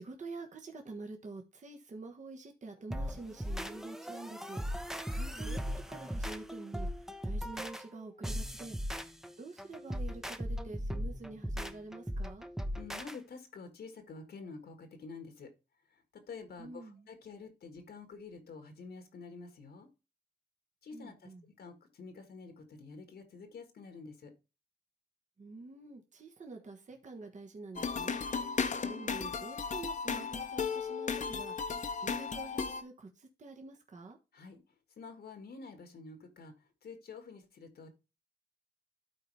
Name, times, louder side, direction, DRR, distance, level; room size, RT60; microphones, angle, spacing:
voice 1, 0.0-5.6 5.9-6.9 7.2-8.8 9.4-12.5 16.6-17.1 20.9-21.4 25.4-28.5 28.8-31.7 32.0-34.2, right 3 dB, 45° right, 1.4 m, -47 dB
sound 1, 2.9-13.2, equal, 5° right, 0.7 m, -38 dB
voice 2, 12.7-15.5 15.9-19.9 20.8-24.3 34.3-34.6 35.0-37.9, left 4 dB, 75° left, 1.6 m, -49 dB
sound 2, 27.8-32.8, left 5 dB, 50° left, 0.9 m, -35 dB
12.5 x 4.2 x 3.3 m
cardioid pair, 80°, 17 cm